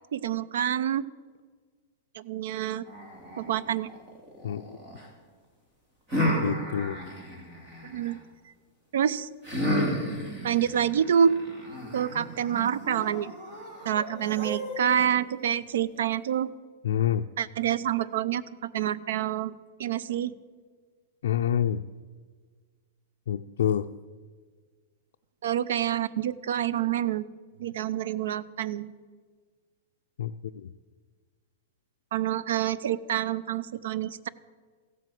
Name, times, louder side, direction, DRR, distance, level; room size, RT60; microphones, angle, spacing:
voice 1, 0.1-1.1 2.1-2.9 3.4-3.9 7.8-8.2 8.9-9.3 10.4-11.4 11.9-13.3 13.8-16.5 17.4-20.3 25.4-27.3 27.6-28.9 32.1-34.3, right 9 dB, 75° right, 18 dB, 0.5 m, -27 dB
sound 1, 2.9-5.1 6.1-8.2 9.4-15.0, equal, 20° right, 2.7 m, -33 dB
voice 2, 4.4-4.8 6.4-7.0 16.8-17.3 21.2-21.8 23.3-23.9 30.2-30.7, left 10 dB, 85° left, 7 dB, 0.4 m, -27 dB
15.0 x 7.7 x 7.6 m, 1.5 s
supercardioid pair, 170°, 0 cm